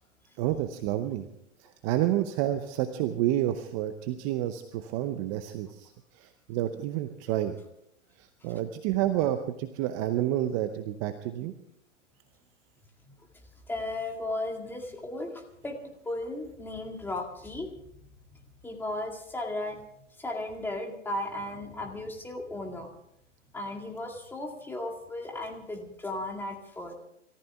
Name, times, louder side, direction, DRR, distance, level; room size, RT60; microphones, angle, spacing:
voice 1, 0.4-1.3 1.6-7.6 8.2-11.5, right 13 dB, 25° right, 9 dB, 0.8 m, -29 dB
voice 2, 13.7-15.8 16.0-17.7 18.6-19.8 20.2-22.9 23.5-26.9, left 2 dB, 5° left, 2 dB, 2.1 m, -35 dB
28.0 x 14.5 x 3.5 m, 0.78 s
hypercardioid pair, 130°, 37 cm